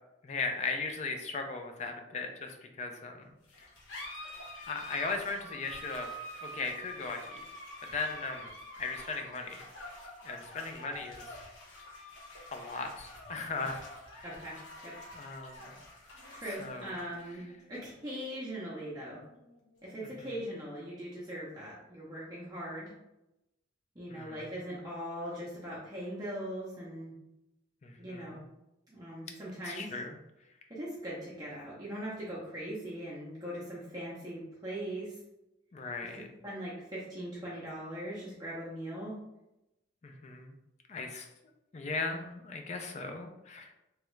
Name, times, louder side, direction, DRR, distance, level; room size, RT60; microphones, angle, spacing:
voice 1, 0.2-3.3 4.7-6.1 6.4-7.4 7.9-8.5 8.8-9.6 10.2-11.4 12.5-13.8 14.2-14.3 15.1-15.8 16.6-16.9 20.2-20.3 24.1-24.5 27.8-28.4 29.6-30.2 35.7-36.3 40.0-40.5 40.9-41.3 41.7-43.7, left 3 dB, 35° left, 5 dB, 0.4 m, -37 dB
sound 1, 3.4-20.4, equal, 90° left, 1.0 m, -48 dB
voice 2, 14.2-14.6 14.8-14.9 16.3-17.4 17.7-19.2 19.8-22.9 24.0-27.1 28.0-28.4 28.9-29.9 30.7-35.1 36.4-39.2, equal, 20° right, -7 dB, 0.6 m, -40 dB
3.1 x 2.3 x 3.1 m, 0.92 s
head